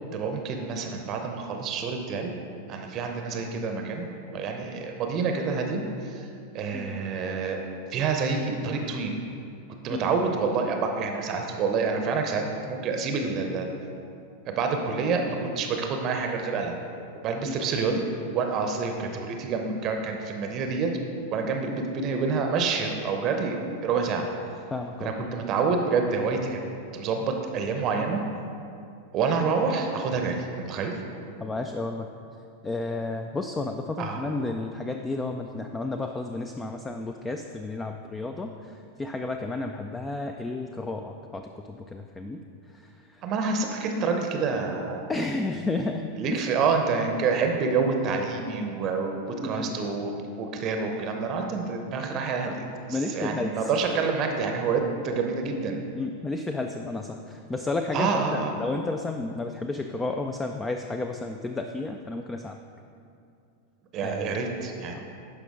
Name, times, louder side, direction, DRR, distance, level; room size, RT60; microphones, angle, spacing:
voice 1, 0.1-2.3 2.7-4.1 4.3-6.3 6.5-7.6 7.9-9.1 9.8-13.7 14.5-16.8 17.1-20.9 21.3-24.3 25.0-26.6 26.9-28.2 29.1-30.9 34.0-34.2 43.2-45.1 46.2-50.1 50.4-55.8 57.9-58.6 63.9-65.0, right 4 dB, 35° right, 4 dB, 0.7 m, -27 dB
voice 2, 24.7-25.1 31.4-32.1 32.6-42.4 42.8-43.2 45.1-46.5 49.4-49.8 52.4-53.7 55.9-62.6 64.0-64.3 64.9-65.0, left 2 dB, 15° left, 5 dB, 0.3 m, -32 dB
11.0 x 5.0 x 3.7 m, 2.5 s
figure-of-eight pair, 90°, 0 cm